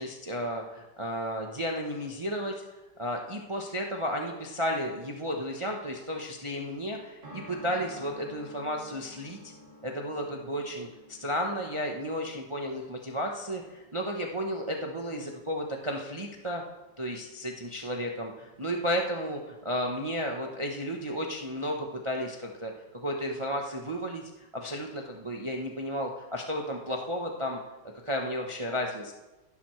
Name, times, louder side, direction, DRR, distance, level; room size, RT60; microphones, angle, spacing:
voice 1, 0.0-2.6 3.0-9.5 9.8-16.6 17.0-27.6 28.0-29.1, equal, 45° right, 1 dB, 0.3 m, -33 dB
sound 1, 7.2-19.4 19.7-19.8 20.0-20.1, equal, 25° right, 2.5 m, -53 dB
15.0 x 11.0 x 3.2 m, 1.1 s
omnidirectional pair, 2.1 m